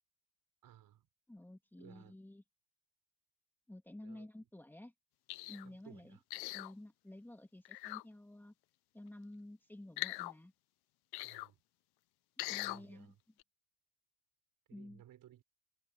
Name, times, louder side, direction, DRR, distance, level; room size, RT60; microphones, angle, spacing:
voice 1, 0.6-1.1 1.8-2.2 4.0-4.3 5.6-6.2 11.2-11.6 12.6-13.1 14.7-15.4, right 12 dB, 45° right, 6.3 m, -59 dB
voice 2, 1.3-2.4 3.7-4.9 5.5-6.2 6.5-8.5 8.9-10.5 12.5-13.2 14.7-15.0, left 1 dB, 5° left, 2.6 m, -52 dB
sound 1, 5.3-5.7 6.3-6.7 7.6-8.0 10.0-10.3 11.1-11.5 12.4-12.8 13.4-13.5, left 21 dB, 55° left, 0.8 m, -41 dB
supercardioid pair, 125°, 47 cm